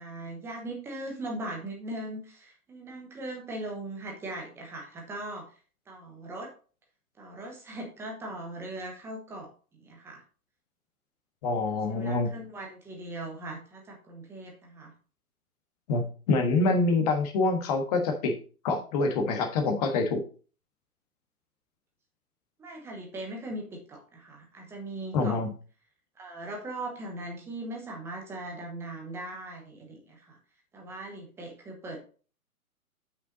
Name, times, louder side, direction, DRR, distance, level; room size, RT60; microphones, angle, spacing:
voice 1, 0.0-5.4 5.9-6.5 7.2-10.2 11.7-14.9 22.6-25.4 26.2-30.4 30.7-32.0, right 1 dB, 5° right, 1 dB, 1.0 m, -39 dB
voice 2, 11.4-12.3 15.9-18.4 18.6-20.2 25.1-25.5, left 3 dB, 25° left, 4 dB, 1.4 m, -26 dB
7.8 x 6.0 x 4.0 m, 0.39 s
hypercardioid pair, 145°, 45 cm